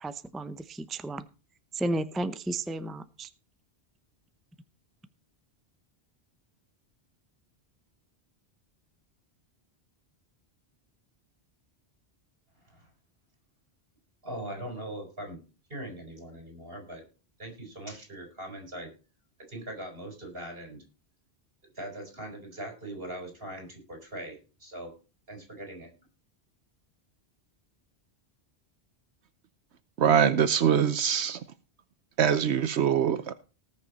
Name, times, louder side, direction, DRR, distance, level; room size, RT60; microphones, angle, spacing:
voice 1, 0.0-1.2 1.7-3.3, right 1 dB, ahead, 0.5 m, -33 dB
voice 2, 14.2-15.4 15.7-17.0 17.4-18.9 19.5-20.8 21.7-24.9 25.3-25.9, right 1 dB, 60° right, 4.8 m, -41 dB
voice 3, 30.0-31.4 32.2-33.3, right 8 dB, 80° right, 1.0 m, -23 dB
19.0 x 6.5 x 4.2 m
omnidirectional pair, 1.1 m